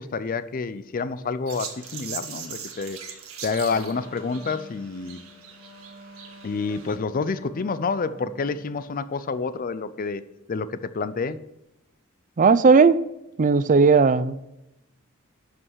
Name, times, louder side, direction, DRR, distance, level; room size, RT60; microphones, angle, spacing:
voice 1, 0.0-3.0 3.4-5.2 6.4-10.2 10.5-11.4, left 4 dB, 40° left, 0.5 m, -28 dB
sound 1, 1.5-7.0, right 7 dB, 90° right, 1.7 m, -40 dB
Wind instrument woodwind instrument, 3.6-8.8, left 2 dB, 70° left, 3.9 m, -47 dB
voice 2, 12.4-13.0 13.4-14.4, right 4 dB, 40° right, 0.4 m, -16 dB
11.0 x 5.5 x 6.3 m
head